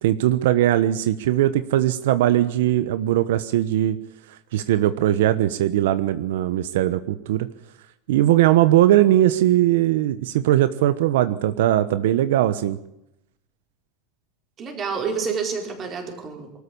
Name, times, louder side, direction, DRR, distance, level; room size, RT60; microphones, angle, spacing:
voice 1, 0.0-4.0 4.5-7.5 8.1-12.8, right 13 dB, 80° right, 13 dB, 1.1 m, -19 dB
voice 2, 14.6-16.6, right 5 dB, 25° right, 4 dB, 4.7 m, -29 dB
24.5 x 13.5 x 8.6 m, 0.84 s
supercardioid pair, 165°, 0 cm